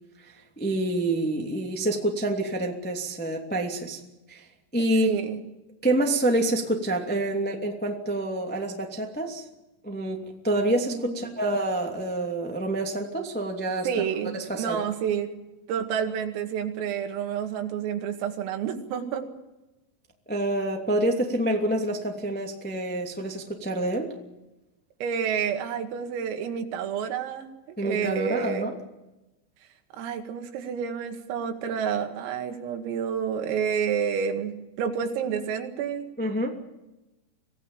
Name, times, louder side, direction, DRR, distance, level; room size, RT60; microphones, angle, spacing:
voice 1, 0.2-4.0 4.3-5.1 5.8-9.5 9.8-13.9 14.3-14.8 20.2-24.1 27.8-28.8 36.2-36.6, right 1 dB, 15° left, 1 dB, 0.3 m, -27 dB
voice 2, 5.0-5.4 10.8-11.3 13.9-15.3 15.7-19.3 25.0-28.7 29.9-36.1, right 7 dB, 90° right, 5 dB, 4.7 m, -29 dB
25.5 x 17.0 x 9.0 m, 1.0 s
omnidirectional pair, 5.8 m